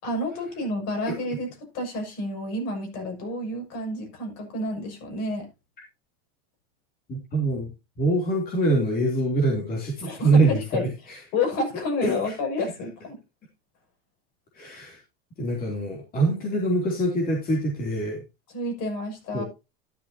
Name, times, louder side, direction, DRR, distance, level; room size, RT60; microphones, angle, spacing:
voice 1, 0.0-5.5 10.0-10.9 11.3-13.2 18.5-19.4, left 2 dB, 50° left, 3 dB, 6.6 m, -30 dB
voice 2, 7.1-7.7 8.0-11.2 12.0-12.3 14.5-15.0 15.4-18.2 19.3-19.4, right 2 dB, 30° left, 1 dB, 3.0 m, -24 dB
12.0 x 10.5 x 2.8 m, 0.25 s
supercardioid pair, 140°, 32 cm